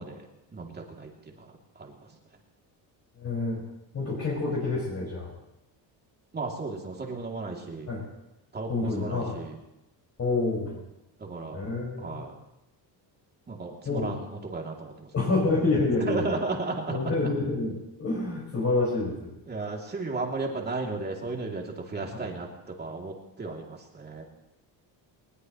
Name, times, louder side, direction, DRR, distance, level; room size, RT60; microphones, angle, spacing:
voice 1, 0.0-2.0 6.3-7.9 8.5-9.6 11.2-11.6 12.0-12.3 13.5-15.1 16.1-17.3 19.5-24.2, right 3 dB, 20° right, 0 dB, 2.8 m, -34 dB
voice 2, 3.2-3.6 3.9-5.3 7.9-8.0 8.7-9.4 10.2-10.8 11.5-12.3 13.9-14.1 15.1-16.4 16.9-17.7 18.0-19.3 22.1-22.2, left 3 dB, 35° left, -5 dB, 5.5 m, -28 dB
21.0 x 20.5 x 3.1 m, 0.91 s
cardioid pair, 145°, 43 cm